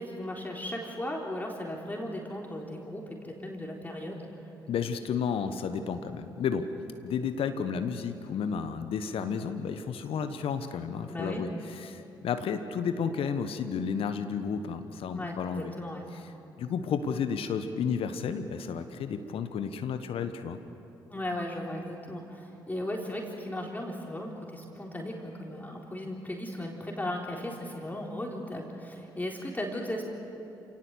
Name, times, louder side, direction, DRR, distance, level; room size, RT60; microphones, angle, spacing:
voice 1, 0.0-4.3 11.1-11.5 15.1-16.1 21.1-30.1, left 1 dB, 15° left, -1 dB, 3.8 m, -36 dB
voice 2, 4.7-6.7 7.0-15.7 16.1-16.2 16.6-20.6, left 6 dB, 60° left, 9 dB, 1.3 m, -32 dB
28.0 x 18.0 x 8.1 m, 2.8 s
hypercardioid pair, 45°, 11 cm